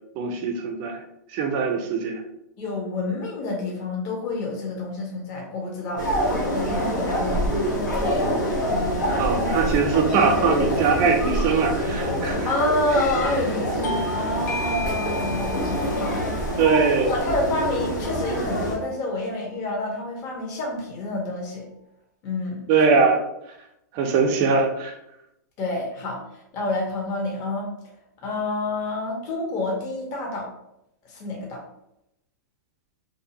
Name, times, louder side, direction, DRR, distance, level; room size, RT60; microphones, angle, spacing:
voice 1, 0.2-1.0 1.3-2.2 9.2-12.5 16.6-17.1 22.7-23.2 23.9-24.9, right 5 dB, 45° right, 3 dB, 0.5 m, -21 dB
voice 2, 2.6-6.1 6.5-7.5 12.4-16.2 17.0-21.7 22.2-22.7 25.6-26.2 26.5-27.7 28.2-30.5 31.0-31.6, left 2 dB, 40° left, -1 dB, 0.8 m, -28 dB
sound 1, 6.0-18.8, equal, 90° left, 0.9 m, -26 dB
Bell / Doorbell, 13.8-18.9, left 1 dB, 65° left, 0.4 m, -35 dB
2.6 x 2.4 x 2.8 m, 0.83 s
hypercardioid pair, 115°, 10 cm